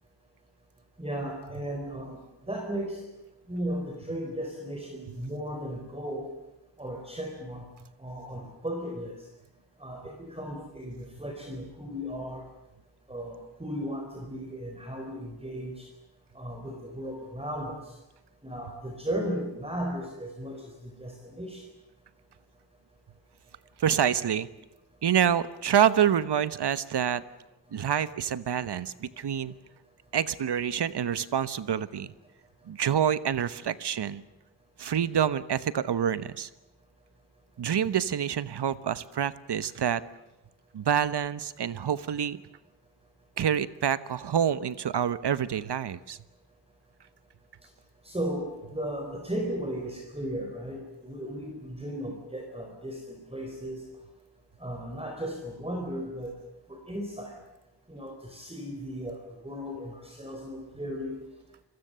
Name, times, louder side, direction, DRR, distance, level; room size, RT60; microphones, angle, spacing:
voice 1, 1.0-2.2 2.5-3.0 3.5-6.3 6.8-7.7 8.0-9.1 9.8-12.4 13.1-15.9 16.3-17.9 18.4-21.6 48.0-53.8 54.6-56.3 56.7-57.3 57.9-59.2 59.4-61.2, equal, 15° right, 1 dB, 4.2 m, -36 dB
voice 2, 23.8-24.5 25.0-27.2 27.7-29.5 30.1-32.1 32.7-34.2 34.8-36.5 37.6-40.0 40.7-42.4 43.4-46.2, right 9 dB, 70° right, 15 dB, 1.1 m, -27 dB
28.5 x 22.5 x 6.9 m, 0.97 s
wide cardioid pair, 110°, 42 cm